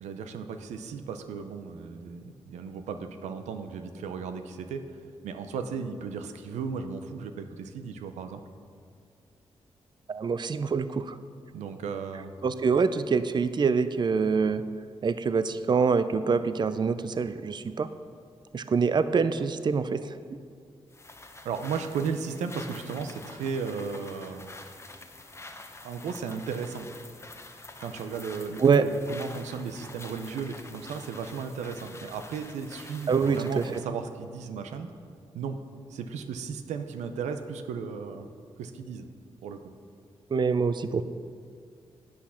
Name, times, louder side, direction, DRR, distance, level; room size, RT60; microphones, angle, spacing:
voice 1, 0.0-4.8 5.2-8.4 11.5-12.3 21.4-24.5 25.8-26.9 27.8-34.9 35.3-35.6 35.9-38.3 38.6-39.1 39.4-39.6, right 6 dB, 90° right, 8 dB, 0.6 m, -35 dB
voice 2, 10.1-11.1 12.4-14.6 15.0-17.9 18.5-20.1 28.6-28.9 33.1-33.6 40.3-41.0, right 5 dB, 40° right, 12 dB, 0.5 m, -25 dB
sound 1, 20.9-33.9, left 2 dB, 25° left, 0.9 m, -47 dB
8.7 x 8.2 x 5.7 m, 2.2 s
supercardioid pair, 50°, 12 cm